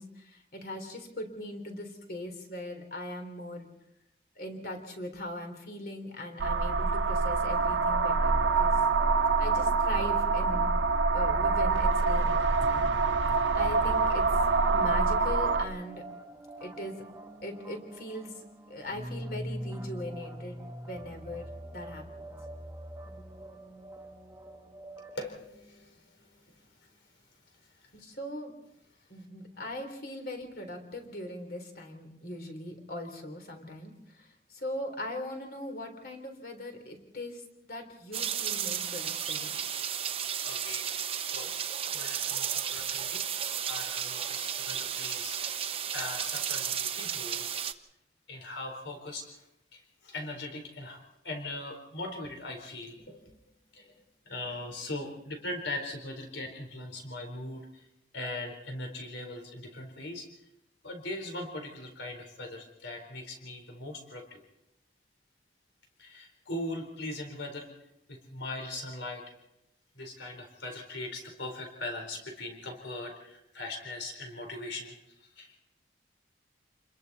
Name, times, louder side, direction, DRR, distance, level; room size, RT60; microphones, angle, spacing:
voice 1, 0.0-3.7 4.4-8.8 9.4-10.7 11.1-12.9 13.5-14.2 14.7-16.0 16.6-17.0 17.4-22.4 27.9-28.5 29.1-39.6, left 1 dB, 55° left, 4 dB, 3.8 m, -40 dB
sound 1, 6.4-15.6, right 4 dB, 85° right, 0.8 m, -25 dB
sound 2, 7.4-25.2, right 1 dB, 15° right, 1.7 m, -45 dB
voice 2, 25.1-26.6 27.8-27.9 40.4-41.5 41.9-43.2 43.7-45.7 45.9-47.5 48.3-49.4 49.7-51.0 51.2-53.4 53.7-54.0 54.3-57.7 58.1-60.3 60.8-64.4 66.0-67.7 68.1-69.2 69.9-75.6, left 2 dB, 85° left, 3 dB, 4.3 m, -40 dB
sound 3, 38.1-47.7, right 8 dB, 30° right, 0.9 m, -33 dB
29.5 x 22.0 x 4.3 m, 0.87 s
head